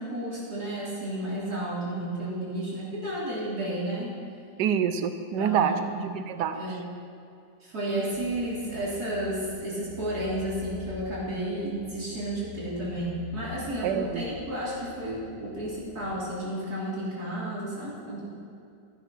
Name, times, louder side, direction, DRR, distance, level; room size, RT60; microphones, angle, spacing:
voice 1, 0.0-4.1 5.4-6.1 6.5-6.8 7.6-18.3, right 1 dB, 60° right, -6 dB, 3.8 m, -32 dB
voice 2, 4.6-5.8 6.1-6.6 13.8-14.2, right 8 dB, 75° right, 10 dB, 1.4 m, -26 dB
sound 1, 8.1-16.2, left 4 dB, 25° left, 1.9 m, -46 dB
14.0 x 10.0 x 6.1 m, 2.5 s
omnidirectional pair, 1.9 m